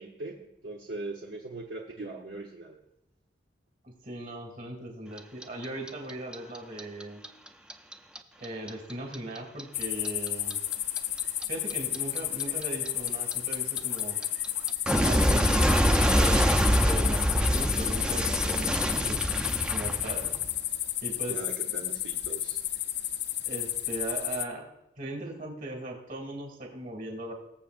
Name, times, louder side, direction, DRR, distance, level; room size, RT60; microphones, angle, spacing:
voice 1, 0.0-2.8 21.3-22.6, right 2 dB, 70° right, 0 dB, 0.9 m, -40 dB
voice 2, 3.8-7.2 8.4-10.6 11.5-14.2 15.0-16.4 16.8-19.2 19.7-20.3 21.0-21.4 23.4-24.6 25.0-27.3, right 1 dB, 50° right, 2 dB, 2.4 m, -38 dB
Clock, 5.2-8.2 8.4-11.4 11.7-20.6, equal, 5° right, 0.5 m, -25 dB
sound 1, 9.7-24.4, left 13 dB, 60° left, 0.5 m, -32 dB
21.0 x 7.3 x 2.5 m, 0.86 s
head